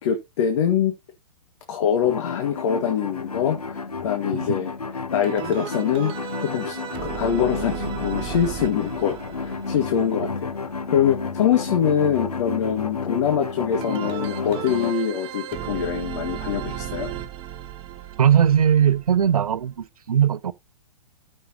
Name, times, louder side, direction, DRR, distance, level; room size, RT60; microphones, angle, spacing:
voice 1, 0.0-0.9 1.7-4.7 5.1-6.8 7.0-17.1, left 8 dB, 55° left, 1.9 m, -24 dB
sound 1, 2.0-14.9, left 4 dB, 90° left, 1.1 m, -31 dB
sound 2, 5.2-11.1 13.8-19.8, right 10 dB, 30° right, 2.3 m, -35 dB
voice 2, 18.2-20.5, right 9 dB, 75° right, 0.7 m, -19 dB
13.5 x 6.4 x 2.9 m
hypercardioid pair, 120°, 19 cm